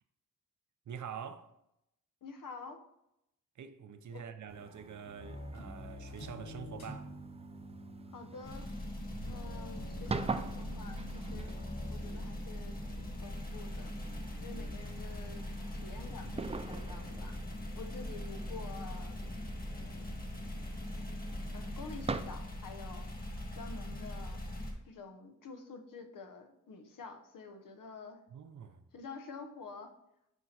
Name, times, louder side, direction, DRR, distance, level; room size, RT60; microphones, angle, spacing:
voice 1, 0.9-1.5 3.6-7.1 9.1-9.4 28.3-28.8, right 7 dB, 65° right, 0.7 m, -46 dB
voice 2, 2.2-2.8 4.1-4.2 8.1-8.6 9.3-11.6 11.9-13.9 14.4-15.4 15.7-17.4 17.7-19.2 19.8-20.2 20.9-21.1 21.5-23.1 23.5-24.4 24.9-28.2 28.9-29.9, left 4 dB, 85° left, 1.0 m, -48 dB
sound 1, 4.5-22.2, right 4 dB, 20° right, 0.4 m, -45 dB
sound 2, 5.2-12.2, equal, 55° left, 2.5 m, -47 dB
sound 3, 8.4-24.7, left 1 dB, 30° left, 1.6 m, -41 dB
7.0 x 4.5 x 4.2 m
cardioid pair, 90°, 32 cm